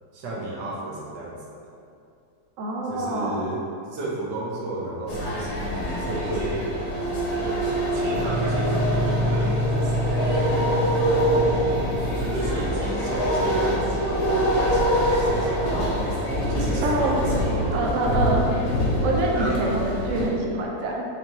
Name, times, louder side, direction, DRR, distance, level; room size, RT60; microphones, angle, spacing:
voice 1, 0.1-1.4 2.9-3.6 3.9-6.7 7.4-10.2 12.1-16.0 16.5-18.3 19.3-19.6, right 2 dB, 85° right, -4 dB, 1.4 m, -33 dB
voice 2, 2.6-3.6 16.8-17.1 17.7-18.5 19.0-21.1, right 2 dB, 60° right, -2 dB, 0.9 m, -25 dB
sound 1, 5.1-20.3, equal, 50° left, 1.0 m, -25 dB
sound 2, 8.0-20.0, equal, 45° right, 1.7 m, -29 dB
6.8 x 2.6 x 2.9 m, 2.4 s
omnidirectional pair, 1.8 m